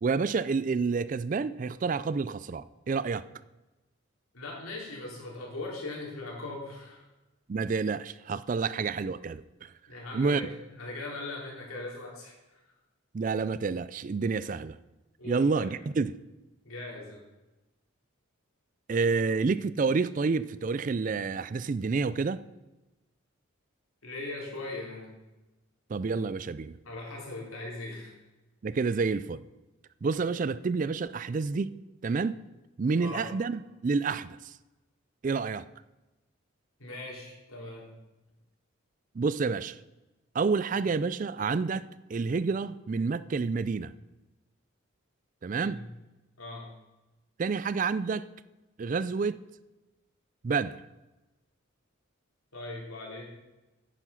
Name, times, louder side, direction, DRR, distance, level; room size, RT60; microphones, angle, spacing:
voice 1, 0.0-3.2 7.5-9.7 10.1-10.4 13.1-14.8 15.2-16.1 18.9-22.4 25.9-26.8 28.6-29.4 30.0-31.7 32.0-32.4 32.8-34.5 35.2-35.6 39.2-39.8 40.3-43.9 45.4-45.8 47.4-48.3 48.8-49.4 50.4-50.8, right 4 dB, 40° right, 0.3 m, -29 dB
voice 2, 4.3-7.1 9.9-12.6 15.2-15.7 16.6-17.2 24.0-25.1 26.8-28.1 33.0-33.3 36.8-37.9 45.6-45.9 46.4-46.7 52.5-53.3, left 2 dB, 90° left, 3.6 m, -40 dB
10.0 x 9.3 x 5.7 m
head